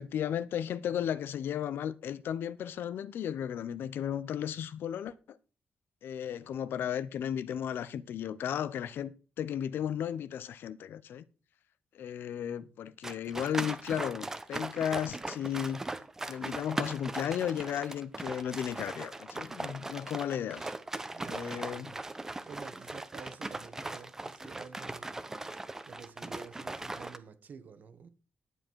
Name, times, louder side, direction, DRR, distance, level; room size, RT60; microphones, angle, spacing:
voice 1, 0.0-5.4 6.0-11.2 11.9-15.8 16.3-20.7 21.3-21.9, left 9 dB, 85° left, 0.7 m, -34 dB
sound 1, 13.0-27.2, right 2 dB, 15° right, 0.7 m, -39 dB
voice 2, 21.1-22.0 22.5-25.2 25.9-28.1, right 6 dB, 50° right, 1.2 m, -49 dB
11.0 x 7.6 x 4.6 m
wide cardioid pair, 180°, 4 cm